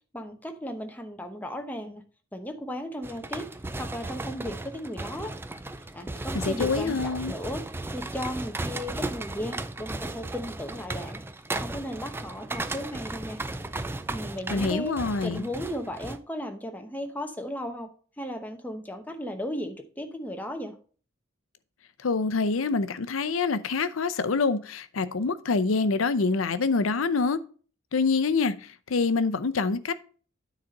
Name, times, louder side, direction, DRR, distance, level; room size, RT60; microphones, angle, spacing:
voice 1, 0.1-2.0 2.3-3.5 3.8-5.3 5.9-7.6 7.9-11.2 11.5-13.4 14.1-15.0 15.2-17.9 18.2-20.7, equal, 10° left, 0.9 m, -35 dB
sound 1, 3.0-16.2, right 2 dB, 10° right, 0.3 m, -35 dB
voice 2, 6.4-7.3 14.5-15.5 22.0-27.4 27.9-29.9, left 4 dB, 85° left, 0.6 m, -26 dB
9.5 x 4.1 x 5.3 m
head